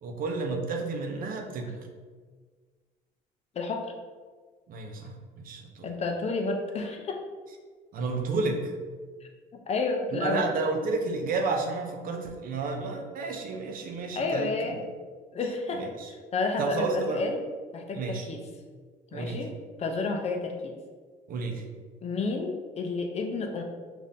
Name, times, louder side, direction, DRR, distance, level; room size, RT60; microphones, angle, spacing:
voice 1, 0.0-1.7 4.7-5.9 7.9-8.7 10.1-14.8 15.7-16.1 16.6-17.2 17.9-18.3 19.1-19.5 21.3-21.6, right 3 dB, 55° right, 3 dB, 0.6 m, -31 dB
voice 2, 3.6-3.9 5.8-7.2 9.7-10.5 14.2-14.8 15.3-17.4 17.7-18.4 19.1-20.7 22.0-23.6, left 3 dB, 40° left, 3 dB, 0.5 m, -31 dB
5.3 x 2.6 x 2.6 m, 1.5 s
cardioid pair, 110°, 17 cm